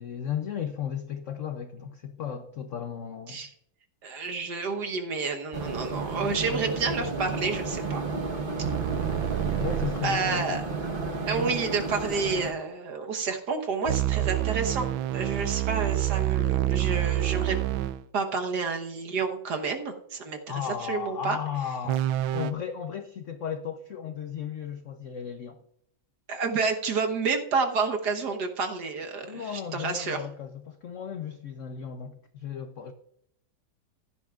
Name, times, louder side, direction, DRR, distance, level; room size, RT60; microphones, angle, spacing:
voice 1, 0.0-3.4 9.6-11.1 14.2-14.3 20.5-25.6 29.2-32.9, left 8 dB, 75° left, 8 dB, 0.7 m, -35 dB
voice 2, 4.0-8.0 10.0-10.6 11.3-14.9 15.1-17.8 18.1-20.4 20.9-21.4 26.3-30.2, right 4 dB, 60° right, 4 dB, 1.6 m, -29 dB
sound 1, 5.5-12.5, right 3 dB, 35° right, 1.0 m, -32 dB
sound 2, 8.6-10.0 13.9-18.0 21.8-22.5, right 14 dB, 80° right, 1.4 m, -27 dB
15.5 x 11.0 x 2.4 m, 0.73 s
omnidirectional pair, 2.2 m